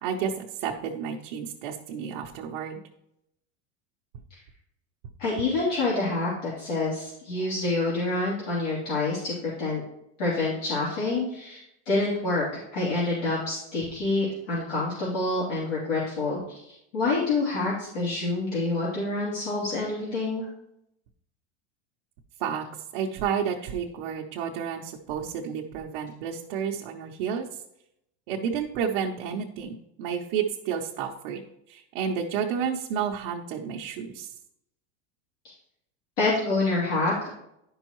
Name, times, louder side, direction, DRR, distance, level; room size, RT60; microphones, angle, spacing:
voice 1, 0.0-2.8 22.4-22.6 22.9-27.5 28.3-31.4 31.7-34.3, right 7 dB, 45° right, -1 dB, 0.7 m, -31 dB
voice 2, 5.2-9.8 10.2-12.4 12.7-20.5 36.2-37.3, left 2 dB, 80° left, -8 dB, 3.1 m, -27 dB
10.5 x 5.4 x 3.0 m, 0.80 s
supercardioid pair, 175°, 36 cm